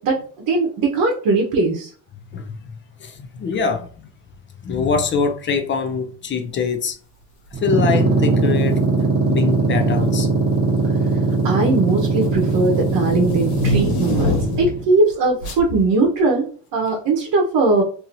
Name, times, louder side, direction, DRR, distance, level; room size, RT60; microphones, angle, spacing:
voice 1, 0.0-1.9 11.4-17.8, right 3 dB, 50° right, 1.0 m, -20 dB
voice 2, 3.0-4.1 4.6-7.0 7.5-8.8 9.3-10.3, left 5 dB, 25° left, 0.4 m, -23 dB
sound 1, 7.5-14.9, right 3 dB, 20° right, 1.0 m, -20 dB
sound 2, 8.5-8.8 9.7-10.2 10.5-14.8 15.4-15.7, left 2 dB, 80° left, 1.3 m, -26 dB
2.8 x 2.8 x 2.6 m
supercardioid pair, 90°, 47 cm